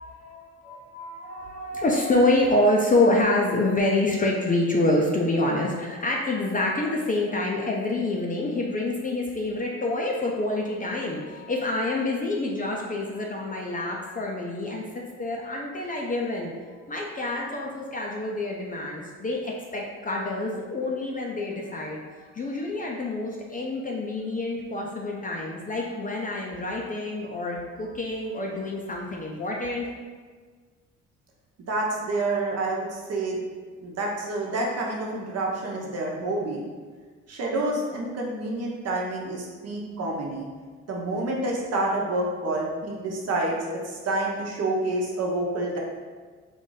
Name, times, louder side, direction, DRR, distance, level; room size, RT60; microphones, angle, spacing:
voice 1, 0.0-14.8 15.2-29.9, left 2 dB, 30° left, -2 dB, 0.5 m, -27 dB
voice 2, 31.7-33.4 33.8-36.7 37.3-40.5 40.9-45.8, right 2 dB, 55° right, -2 dB, 1.0 m, -28 dB
3.8 x 2.5 x 3.9 m, 1.5 s
cardioid pair, 90°, 30 cm